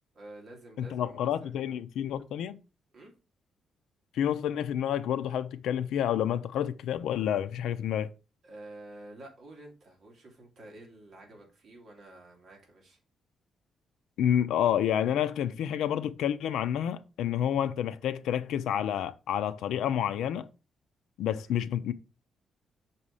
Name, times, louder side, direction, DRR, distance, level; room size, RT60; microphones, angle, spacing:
voice 1, 0.1-1.8 2.9-3.1 8.4-13.0 21.4-21.6, right 1 dB, 35° right, 2.0 m, -50 dB
voice 2, 0.8-2.6 4.1-8.1 14.2-20.5 21.2-21.9, left 10 dB, 85° left, 0.5 m, -29 dB
6.1 x 4.2 x 4.9 m
cardioid pair, 180°, 0 cm